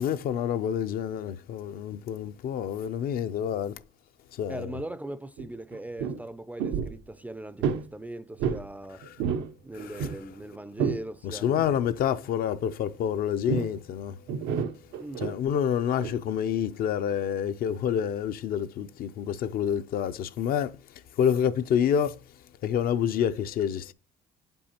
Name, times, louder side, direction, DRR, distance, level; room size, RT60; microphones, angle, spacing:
voice 1, 0.0-3.8 4.3-4.7 9.8-10.1 11.2-14.2 15.2-20.8 21.2-22.2 22.6-23.9, left 9 dB, 60° left, 0.4 m, -28 dB
voice 2, 4.5-9.1 9.6-12.0 15.0-15.3, right 1 dB, 10° right, 0.3 m, -40 dB
sound 1, 5.4-5.5 5.7-6.2 6.6-7.0 7.6-7.9 8.4-8.7 9.0-9.5 9.8-11.0 11.6-11.8 13.5-13.8 14.3-15.4 16.0-16.1, right 7 dB, 90° right, 0.6 m, -30 dB
8.1 x 5.3 x 2.8 m
cardioid pair, 110°, 17 cm